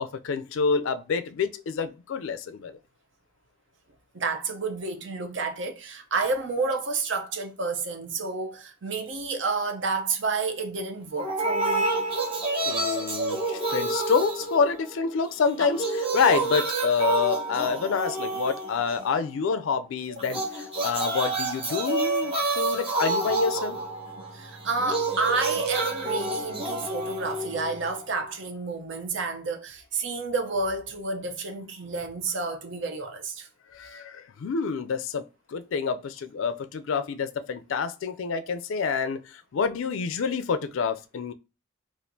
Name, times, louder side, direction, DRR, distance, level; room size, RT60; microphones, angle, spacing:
voice 1, 0.0-2.8 12.7-23.8 33.7-41.3, left 5 dB, 70° left, 0.3 m, -27 dB
voice 2, 4.1-11.9 24.3-33.5, right 3 dB, 60° right, 0.6 m, -30 dB
sound 1, 11.2-15.1 15.4-19.2 20.2-28.2, right 2 dB, 25° right, 0.9 m, -29 dB
4.3 x 2.4 x 2.6 m
head